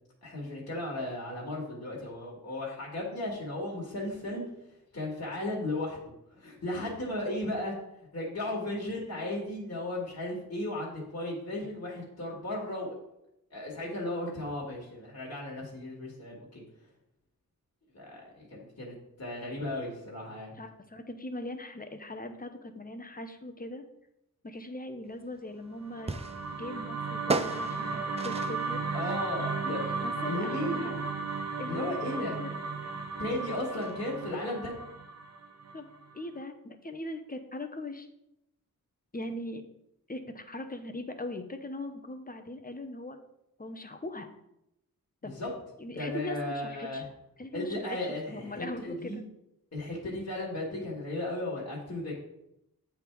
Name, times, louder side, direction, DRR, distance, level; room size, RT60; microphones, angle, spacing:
voice 1, 0.2-4.4 4.9-7.8 8.1-13.0 13.5-16.6 17.9-20.5 28.9-29.8 30.3-31.0 31.7-32.3 33.2-34.7 45.2-45.5 45.9-47.1 47.5-49.2 49.7-52.1, left 1 dB, 45° left, -4 dB, 1.9 m, -35 dB
voice 2, 20.5-23.8 24.4-26.2 26.5-28.8 30.0-31.0 31.6-32.5 32.8-33.0 35.7-35.8 36.1-38.1 39.1-39.6 40.1-43.2 43.6-44.3 45.2-45.3 45.8-47.0 47.4-49.2, left 2 dB, 25° left, 6 dB, 0.8 m, -40 dB
sound 1, 25.1-34.1, right 2 dB, 15° right, 0.5 m, -39 dB
sound 2, 25.8-36.1, right 4 dB, 45° right, 0.9 m, -35 dB
7.9 x 3.5 x 4.7 m, 0.83 s
cardioid pair, 55°, 36 cm